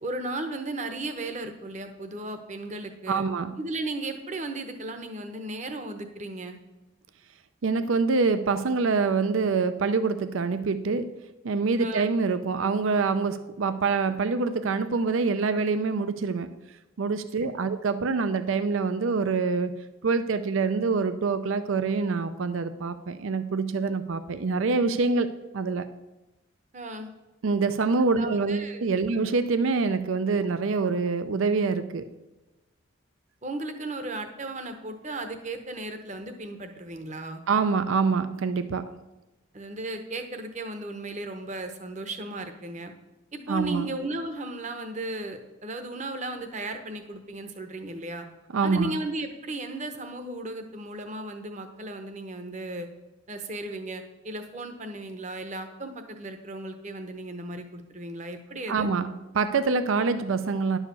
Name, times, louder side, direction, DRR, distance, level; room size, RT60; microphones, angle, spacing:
voice 1, 0.0-3.2 3.6-6.6 11.8-12.1 17.4-17.5 26.7-27.1 28.2-28.9 33.4-37.4 39.5-42.9 43.3-48.2 48.6-52.9 53.3-58.9, right 2 dB, 35° right, 7 dB, 0.9 m, -35 dB
voice 2, 3.1-3.6 7.6-11.1 11.4-16.5 17.0-19.7 20.0-25.9 27.4-32.1 37.5-38.9 43.5-43.9 48.5-49.0 58.7-60.8, right 4 dB, 70° right, 12 dB, 0.5 m, -25 dB
11.0 x 4.8 x 6.8 m, 1.1 s
head